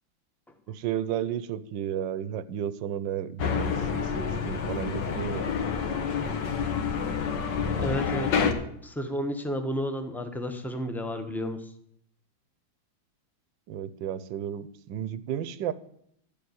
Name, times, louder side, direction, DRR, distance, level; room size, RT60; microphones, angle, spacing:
voice 1, 0.7-5.5 13.7-15.7, right 10 dB, 75° right, 15 dB, 1.4 m, -33 dB
sound 1, 3.4-8.5, left 6 dB, 65° left, 1.8 m, -28 dB
voice 2, 7.8-11.7, equal, ahead, 6 dB, 0.7 m, -32 dB
12.0 x 7.0 x 9.5 m, 0.70 s
omnidirectional pair, 2.1 m